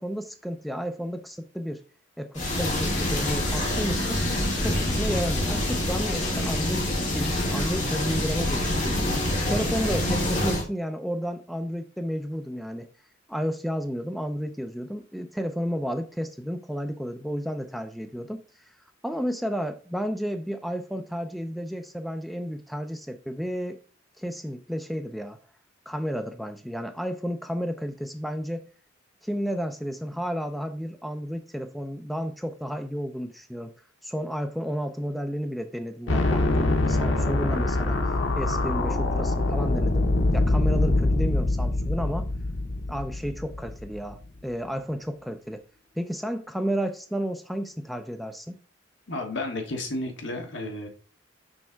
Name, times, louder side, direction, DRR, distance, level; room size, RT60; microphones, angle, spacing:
voice 1, 0.0-1.8 2.2-4.2 4.6-9.1 9.5-12.9 13.3-18.6 19.0-23.8 24.2-25.4 25.9-28.7 29.2-33.7 34.0-42.3 42.9-45.6 46.0-48.6, equal, ahead, 0.4 m, -32 dB
sound 1, 2.3-10.6, left 1 dB, 40° left, 2.1 m, -26 dB
sound 2, 36.1-44.1, left 2 dB, 90° left, 1.0 m, -24 dB
voice 2, 49.1-50.9, left 2 dB, 65° left, 1.3 m, -32 dB
6.3 x 3.5 x 4.4 m
head